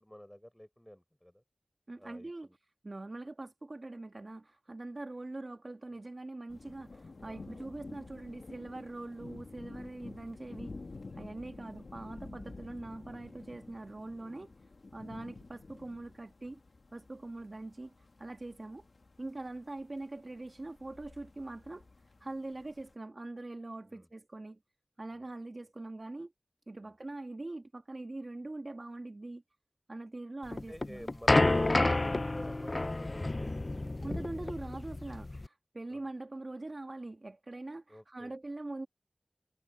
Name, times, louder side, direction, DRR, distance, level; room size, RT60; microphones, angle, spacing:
voice 1, 0.0-1.4 2.0-2.6 5.9-6.0 7.2-7.6 11.4-11.6 23.9-24.1 25.1-25.3 26.8-26.9 30.7-34.2 35.9-36.1 37.9-38.4, equal, 10° left, 4.3 m, -51 dB
voice 2, 1.9-2.5 2.8-10.7 11.1-14.5 14.9-16.6 16.9-18.9 19.2-21.9 22.2-24.6 25.0-26.3 26.7-29.4 29.9-31.1 34.0-38.9, right 2 dB, 55° right, 1.8 m, -43 dB
sound 1, 6.5-22.9, left 3 dB, 90° left, 1.7 m, -50 dB
sound 2, 30.5-35.5, left 2 dB, 50° left, 0.4 m, -29 dB
wide cardioid pair, 50°, 0 cm